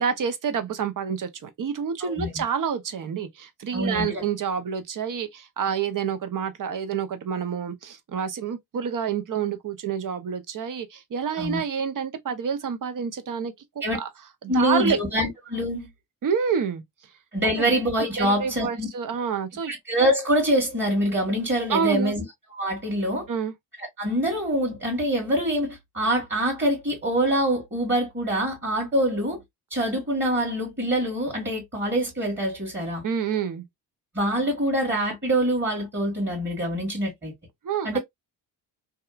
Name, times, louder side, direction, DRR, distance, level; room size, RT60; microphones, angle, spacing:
voice 1, 0.0-13.5 13.9-14.1 14.4-15.0 16.2-16.8 17.6-17.7 18.2-19.7 21.7-22.1 23.3-23.5 33.0-33.6 37.6-38.0, right 7 dB, 40° right, 0.7 m, -28 dB
voice 2, 2.0-2.4 3.7-4.2 11.4-11.6 13.8-14.0 14.5-15.9 17.3-18.9 19.7-22.2 22.6-23.3 24.0-29.4 29.7-33.0 34.1-37.3 37.8-38.0, equal, 20° right, 1.6 m, -25 dB
2.8 x 2.3 x 2.3 m
hypercardioid pair, 45°, 49 cm